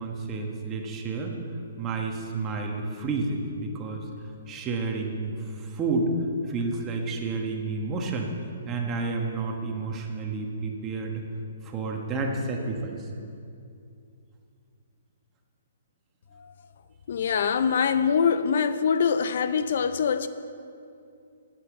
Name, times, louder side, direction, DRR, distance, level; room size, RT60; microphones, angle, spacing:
voice 1, 0.0-1.4 1.8-4.1 4.5-6.1 6.5-8.3 8.7-11.2 11.6-13.1, right 3 dB, 20° right, 1.3 m, -30 dB
voice 2, 17.1-20.3, left 6 dB, 60° left, 0.5 m, -24 dB
9.1 x 8.6 x 7.4 m
hypercardioid pair, 155°, 0 cm